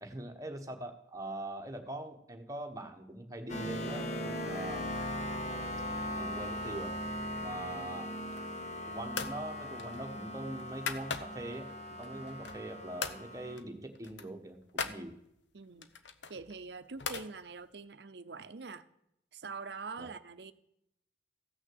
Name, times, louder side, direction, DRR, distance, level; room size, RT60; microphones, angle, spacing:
voice 1, 0.0-4.9 6.1-6.9 7.4-8.2 8.9-11.7 12.0-15.2 20.0-20.1, right 1 dB, 20° right, 4 dB, 1.2 m, -42 dB
sound 1, 3.5-13.6, left 1 dB, 40° left, 0.9 m, -39 dB
sound 2, 8.2-8.7 9.1-9.4 9.8-11.6 12.0-12.7 13.0-13.2 13.6-13.7 14.0-15.0 15.8-17.3, left 6 dB, 80° left, 0.9 m, -40 dB
voice 2, 15.5-15.9 16.3-18.8 19.3-20.5, right 4 dB, 65° right, 12 dB, 0.7 m, -44 dB
14.5 x 6.3 x 7.7 m, 0.78 s
head